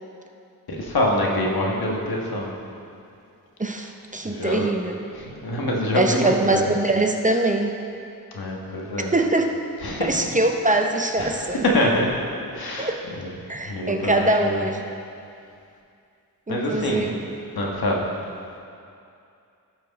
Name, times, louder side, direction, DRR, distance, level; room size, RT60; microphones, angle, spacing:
voice 1, 0.7-2.5 4.3-4.7 5.2-6.6 8.3-9.1 9.8-10.3 11.2-12.1 12.5-12.9 13.7-14.6 16.5-17.1 17.5-18.0, left 1 dB, 80° left, -1 dB, 1.4 m, -25 dB
voice 2, 3.6-5.0 5.9-7.8 9.0-9.6 10.0-11.6 12.8-13.0 13.5-14.8 16.5-17.1, right 2 dB, 20° right, 3 dB, 0.6 m, -23 dB
12.5 x 4.9 x 4.0 m, 2.5 s
cardioid pair, 65°, 36 cm